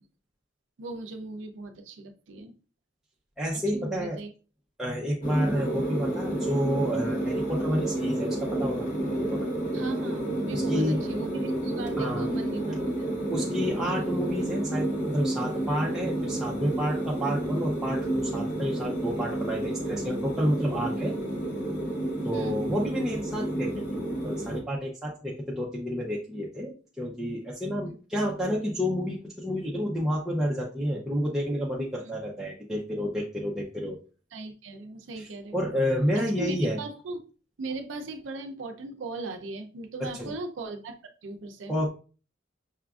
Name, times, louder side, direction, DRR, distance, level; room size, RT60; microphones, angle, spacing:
voice 1, 0.8-2.5 3.7-4.3 9.7-12.8 22.3-22.7 27.9-28.0 32.0-32.1 34.3-35.7 36.1-37.2 37.6-41.7, right 2 dB, 80° right, 5 dB, 0.5 m, -38 dB
voice 2, 3.4-4.2 4.8-9.5 10.5-11.0 12.0-12.3 13.3-21.1 22.2-34.0 35.2-35.3 35.5-36.8 40.0-40.3 41.7-41.9, equal, 5° right, -4 dB, 0.5 m, -30 dB
sound 1, 5.2-24.6, right 1 dB, 45° left, 0.9 m, -30 dB
5.7 x 2.4 x 2.3 m, 0.36 s
head